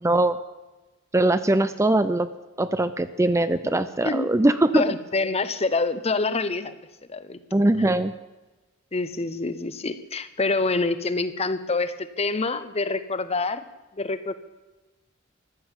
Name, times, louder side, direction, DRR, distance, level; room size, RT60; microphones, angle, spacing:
voice 1, 0.0-0.4 1.1-2.3 2.6-4.9 7.5-8.1, right 1 dB, 15° right, 12 dB, 0.5 m, -21 dB
voice 2, 4.7-6.7 7.1-7.4 7.8-7.9 8.9-13.6 14.0-14.3, left 3 dB, 30° left, 13 dB, 0.8 m, -26 dB
15.5 x 11.0 x 7.3 m, 1.1 s
head